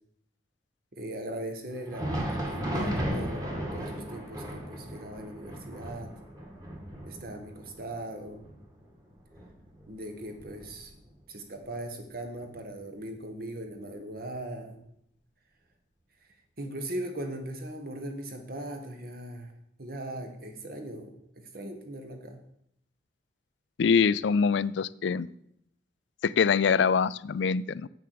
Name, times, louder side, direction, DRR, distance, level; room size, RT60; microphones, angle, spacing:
voice 1, 0.9-6.1 7.0-8.5 9.9-11.0 11.3-14.8 16.6-19.5 19.8-22.4, right 1 dB, 50° right, 5 dB, 1.5 m, -39 dB
Thunder, 1.8-11.2 11.5-11.7 12.4-12.6 13.6-13.7, equal, 20° right, 2.1 m, -36 dB
voice 2, 23.8-25.3 26.2-27.9, left 6 dB, 75° left, 19 dB, 0.4 m, -24 dB
8.2 x 6.9 x 6.8 m, 0.73 s
head